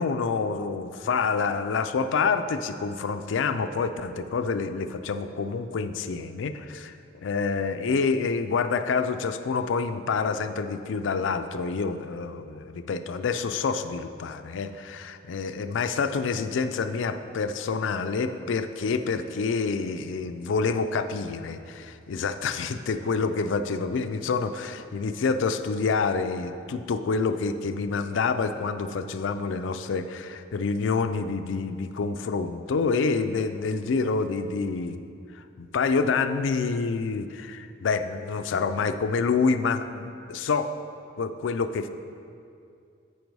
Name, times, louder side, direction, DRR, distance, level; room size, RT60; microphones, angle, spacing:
voice 1, 0.0-35.0 35.3-40.7 41.2-41.9, left 4 dB, 70° left, 9 dB, 0.4 m, -27 dB
8.3 x 5.2 x 4.6 m, 2.5 s
head